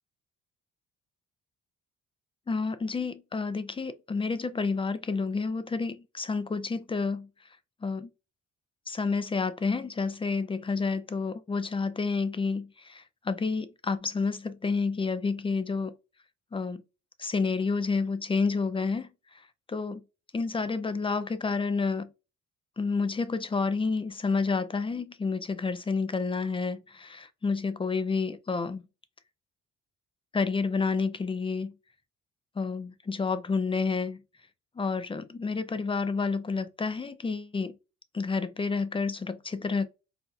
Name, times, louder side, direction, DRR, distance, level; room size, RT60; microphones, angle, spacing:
voice 1, 2.5-7.3 7.8-8.1 8.9-15.9 16.5-16.8 17.2-19.4 19.7-20.0 20.3-22.1 22.8-28.8 30.3-31.7 32.6-34.2 34.8-37.7 38.1-39.9, left 4 dB, 20° left, 0.4 m, -29 dB
4.1 x 2.2 x 2.3 m
cardioid pair, 90°, 30 cm